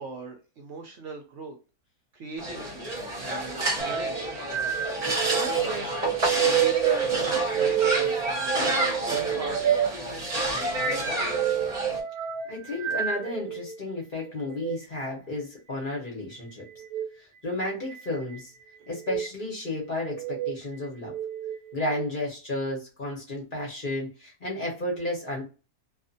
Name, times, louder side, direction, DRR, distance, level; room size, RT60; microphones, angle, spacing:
voice 1, 0.0-1.5 2.1-2.9 3.2-4.3 5.3-6.0 6.3-9.6 9.9-11.3, right 3 dB, 65° right, 2 dB, 0.8 m, -40 dB
sound 1, 2.4-12.0, right 1 dB, 30° right, 0.8 m, -29 dB
sound 2, 3.8-13.7 14.5-14.8 16.8-17.1 17.9-18.4 19.0-19.3 20.0-20.5 21.0-22.1, right 10 dB, 80° right, 1.1 m, -28 dB
voice 2, 12.5-16.6 17.2-18.5 18.9-21.1 21.7-25.4, left 1 dB, 40° left, -2 dB, 0.8 m, -32 dB
2.5 x 2.4 x 2.5 m, 0.32 s
omnidirectional pair, 1.6 m